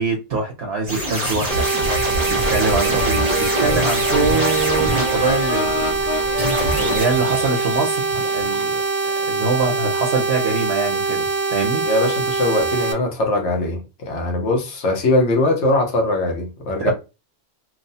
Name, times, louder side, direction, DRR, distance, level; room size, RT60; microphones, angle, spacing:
voice 1, 0.0-1.7 2.3-6.0 6.8-8.8 9.3-11.8 16.8-16.9, right 4 dB, 65° right, 1.0 m, -23 dB
sound 1, 0.9-9.0, right 1 dB, 15° right, 0.9 m, -26 dB
sound 2, 1.5-12.9, right 4 dB, 45° right, 0.5 m, -23 dB
sound 3, 1.8-7.0, left 3 dB, 55° left, 0.6 m, -27 dB
voice 2, 11.8-16.9, left 2 dB, 85° left, 1.1 m, -21 dB
3.0 x 2.0 x 2.6 m
omnidirectional pair, 1.1 m